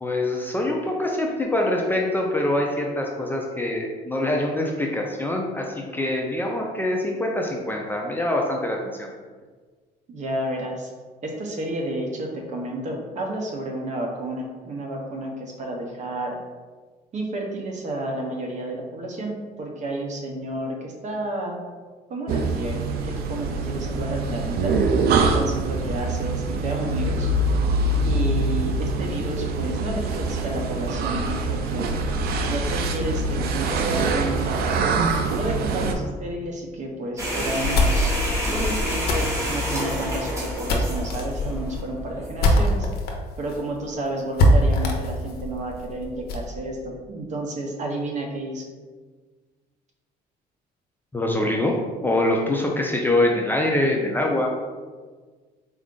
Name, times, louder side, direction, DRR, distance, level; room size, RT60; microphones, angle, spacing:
voice 1, 0.0-9.1 51.1-51.7 52.0-54.5, left 1 dB, 10° left, -1 dB, 0.5 m, -24 dB
voice 2, 10.1-10.9 11.2-16.4 17.1-21.6 22.1-24.8 25.3-27.3 28.0-32.0 32.5-34.8 35.4-38.2 38.5-42.9 43.4-48.7, right 1 dB, 45° right, 1 dB, 0.8 m, -31 dB
sound 1, 22.3-35.9, right 3 dB, 65° right, 0.4 m, -24 dB
sound 2, 37.2-42.4, left 1 dB, 15° right, 1.3 m, -28 dB
sound 3, 37.4-43.1 43.5-43.6 43.9-44.0 44.4-46.5, left 1 dB, 65° left, 0.7 m, -23 dB
4.2 x 2.5 x 3.7 m, 1.4 s
cardioid pair, 110°, 17 cm